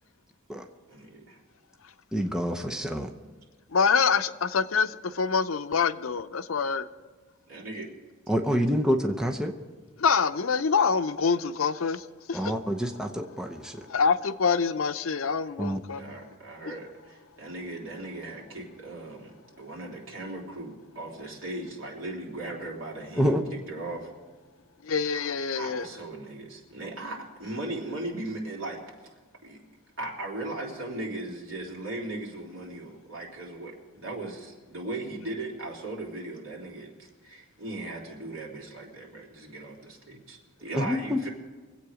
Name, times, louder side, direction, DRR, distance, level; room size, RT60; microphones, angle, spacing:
voice 1, 0.9-1.4 7.5-7.9 8.5-8.6 15.4-15.5 15.9-23.3 23.7-24.1 25.5-28.8 29.4-29.6 30.0-41.3, right 2 dB, 70° right, 3.5 m, -38 dB
voice 2, 2.1-3.1 8.3-9.5 12.3-13.8 15.6-15.8 23.2-23.4 40.8-41.2, equal, 5° right, 0.8 m, -27 dB
voice 3, 3.7-6.9 10.0-12.5 13.9-16.0 24.8-25.9, left 5 dB, 80° left, 0.6 m, -26 dB
24.0 x 8.4 x 5.0 m
head